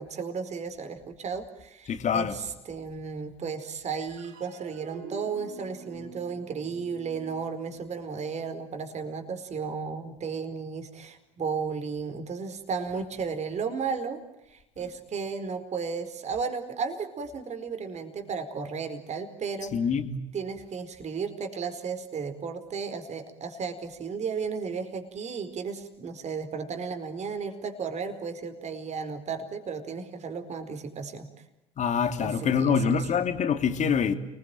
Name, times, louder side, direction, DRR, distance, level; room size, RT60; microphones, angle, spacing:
voice 1, 0.0-14.2 14.5-19.8 20.3-31.3 32.2-33.1, right 5 dB, 45° right, 4.6 m, -34 dB
voice 2, 1.9-2.4 19.7-20.1 31.8-34.1, left 6 dB, 45° left, 2.8 m, -25 dB
sound 1, 3.9-10.6, right 6 dB, 70° right, 3.9 m, -48 dB
29.5 x 21.5 x 9.1 m
hypercardioid pair, 65°, 16 cm